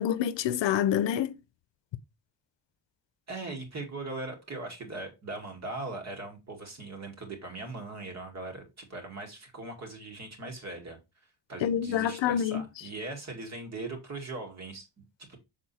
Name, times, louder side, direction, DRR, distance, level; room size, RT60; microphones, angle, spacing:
voice 1, 0.0-1.3 11.6-12.6, left 10 dB, 75° left, 0.7 m, -27 dB
voice 2, 3.3-11.0 11.5-15.4, right 2 dB, 35° right, 2.1 m, -40 dB
6.8 x 3.8 x 4.2 m
wide cardioid pair, 165°, 44 cm